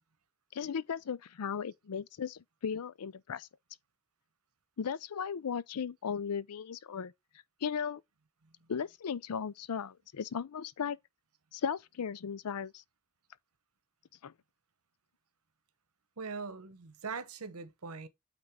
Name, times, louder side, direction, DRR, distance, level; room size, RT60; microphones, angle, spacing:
voice 1, 0.5-3.5 4.8-7.1 7.6-8.0 8.7-11.0 11.5-12.8 14.2-14.3, left 7 dB, 90° left, 0.5 m, -36 dB
voice 2, 16.2-18.1, right 4 dB, 75° right, 1.0 m, -42 dB
8.8 x 3.7 x 3.6 m
head